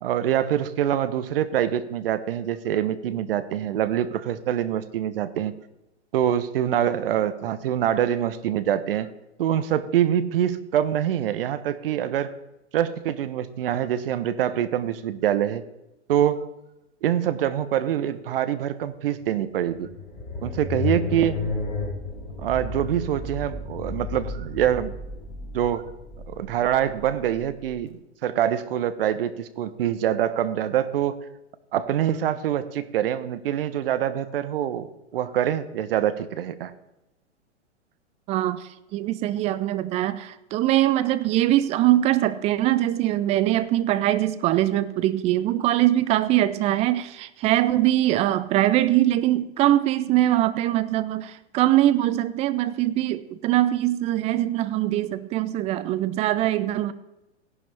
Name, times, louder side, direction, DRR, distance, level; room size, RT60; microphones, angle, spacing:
voice 1, 0.0-5.5 6.1-9.1 9.4-12.3 12.7-15.6 16.1-16.5 17.0-19.9 20.4-21.4 22.4-24.9 25.5-25.8 26.3-31.2 31.7-34.9 35.1-36.7, right 10 dB, 50° right, 13 dB, 1.1 m, -25 dB
sound 1, 19.4-27.7, left 4 dB, 30° left, 5.0 m, -33 dB
voice 2, 38.3-38.6 38.9-56.9, right 14 dB, 20° right, 14 dB, 0.5 m, -22 dB
17.0 x 11.0 x 3.5 m, 0.93 s
figure-of-eight pair, 105°, 35 cm